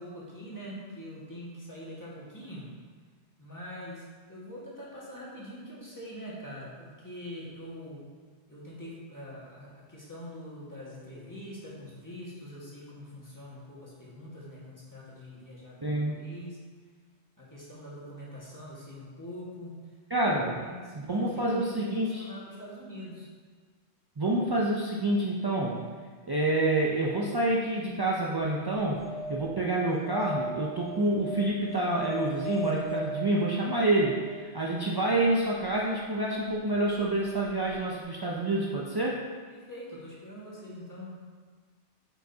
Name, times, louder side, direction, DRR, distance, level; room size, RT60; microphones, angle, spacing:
voice 1, 0.0-2.7 3.4-8.0 8.5-16.6 17.4-19.9 20.3-23.3 39.5-41.1, equal, 15° left, -7 dB, 1.6 m, -44 dB
voice 2, 15.8-16.2 20.1-20.6 20.9-22.3 24.2-25.8 26.3-39.3, right 1 dB, 40° right, -3 dB, 0.3 m, -28 dB
sound 1, 29.0-35.1 37.4-37.5 37.7-37.8, right 1 dB, 55° right, 1.5 m, -38 dB
8.8 x 5.1 x 2.7 m, 1.5 s
omnidirectional pair, 1.2 m